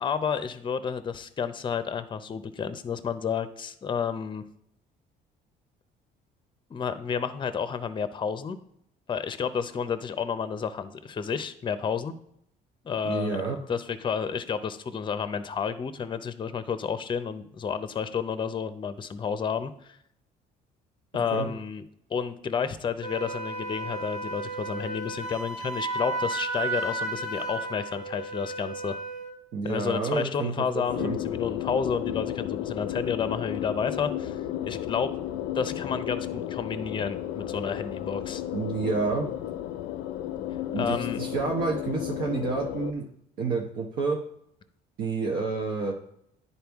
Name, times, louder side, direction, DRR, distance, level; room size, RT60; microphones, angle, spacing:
voice 1, 0.0-4.4 6.7-8.6 9.1-12.1 12.8-13.4 13.7-20.0 21.1-21.8 22.1-29.0 29.6-35.1 35.5-38.4 40.8-41.2, left 6 dB, 30° left, 12 dB, 0.6 m, -31 dB
voice 2, 13.0-13.6 21.3-21.5 29.5-31.2 38.5-39.3 40.7-43.0 43.4-44.2 45.0-45.9, right 4 dB, 70° right, -1 dB, 1.0 m, -29 dB
Wind instrument woodwind instrument, 23.0-29.3, right 2 dB, 55° right, 2.0 m, -33 dB
sound 1, 30.9-42.9, left 12 dB, 85° left, 0.4 m, -33 dB
10.5 x 4.1 x 3.5 m, 0.74 s
cardioid pair, 110°, 17 cm